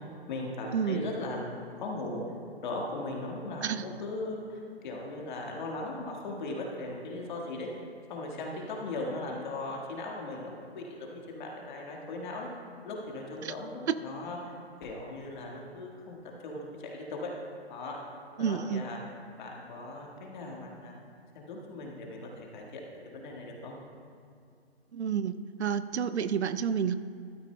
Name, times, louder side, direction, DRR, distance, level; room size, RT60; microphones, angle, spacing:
voice 1, 0.3-2.2 2.6-7.7 8.1-12.5 12.8-17.3 17.7-18.0 18.4-19.0 19.4-20.9 21.3-22.8 23.1-23.8, left 2 dB, 45° left, -1 dB, 1.6 m, -38 dB
voice 2, 18.4-18.8 24.9-25.3 25.6-26.9, right 7 dB, 90° right, 13 dB, 0.5 m, -29 dB
13.0 x 12.0 x 2.2 m, 2.3 s
hypercardioid pair, 145°, 33 cm